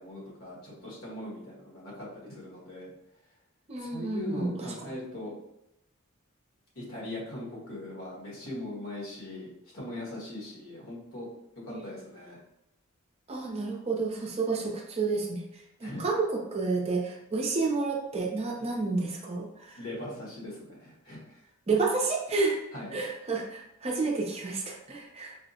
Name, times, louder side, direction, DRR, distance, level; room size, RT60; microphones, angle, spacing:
voice 1, 0.0-2.9 3.8-5.3 6.7-11.3 11.6-12.4 15.8-16.1 19.8-21.4 22.7-23.0, left 1 dB, 85° left, -4 dB, 1.4 m, -40 dB
voice 2, 3.7-4.9 11.7-11.8 13.3-19.8 21.7-22.6 22.9-25.4, right 3 dB, 30° right, 0 dB, 0.5 m, -30 dB
4.3 x 2.0 x 2.7 m, 0.85 s
head